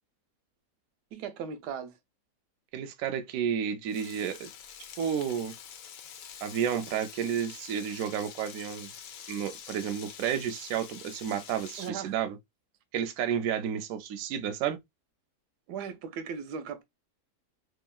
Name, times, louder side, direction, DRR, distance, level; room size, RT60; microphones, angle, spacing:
voice 1, 1.1-1.9 11.8-12.2 15.7-16.8, right 7 dB, 85° right, 1.2 m, -37 dB
voice 2, 2.7-4.5 5.0-5.5 6.4-8.9 9.3-12.4 12.9-14.8, right 8 dB, 70° right, 0.9 m, -31 dB
Frying (food), 3.9-11.9, left 8 dB, 70° left, 0.9 m, -46 dB
2.9 x 2.5 x 2.2 m
omnidirectional pair, 1.7 m